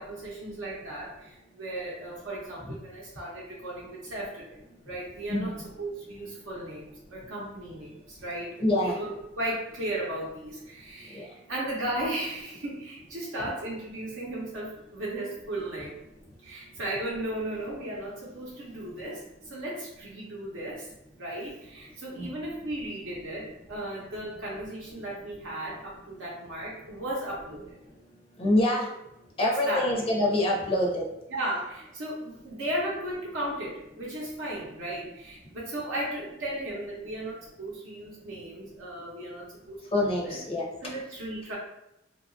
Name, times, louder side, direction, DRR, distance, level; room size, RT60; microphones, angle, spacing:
voice 1, 0.0-4.6 4.8-16.0 16.4-20.9 21.2-27.8 29.7-29.9 31.3-40.4 40.8-41.6, right 1 dB, 70° right, -5 dB, 0.7 m, -36 dB
voice 2, 8.6-9.0 11.1-11.3 22.2-22.4 28.4-28.9 29.4-31.1 39.9-40.7, left 1 dB, 30° left, -2 dB, 0.5 m, -25 dB
2.8 x 2.3 x 2.5 m, 0.86 s
head